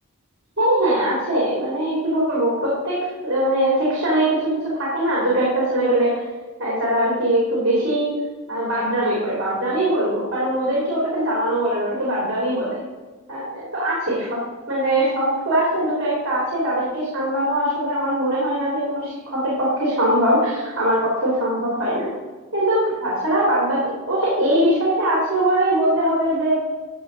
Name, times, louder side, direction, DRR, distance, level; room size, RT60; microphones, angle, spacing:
voice 1, 0.6-6.1 6.6-8.1 8.5-12.8 13.3-14.4 14.7-22.1 22.5-23.8 24.1-26.5, right 1 dB, 60° right, -6 dB, 3.1 m, -21 dB
13.0 x 6.2 x 3.9 m, 1.3 s
head